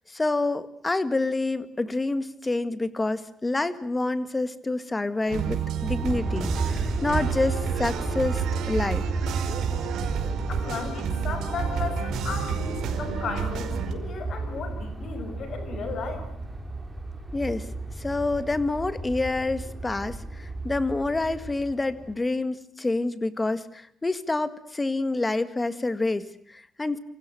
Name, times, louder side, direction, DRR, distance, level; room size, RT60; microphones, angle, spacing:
voice 1, 0.1-9.0 17.3-17.7 18.0-27.0, left 2 dB, 15° left, 12 dB, 1.8 m, -28 dB
sound 1, 5.3-13.9, right 9 dB, 70° right, 4.9 m, -30 dB
Aircraft, 6.0-22.1, right 2 dB, 10° right, 4.0 m, -33 dB
voice 2, 10.5-16.2, left 5 dB, 45° left, 9 dB, 7.7 m, -35 dB
28.0 x 26.0 x 7.8 m, 0.68 s
cardioid pair, 165°, 0 cm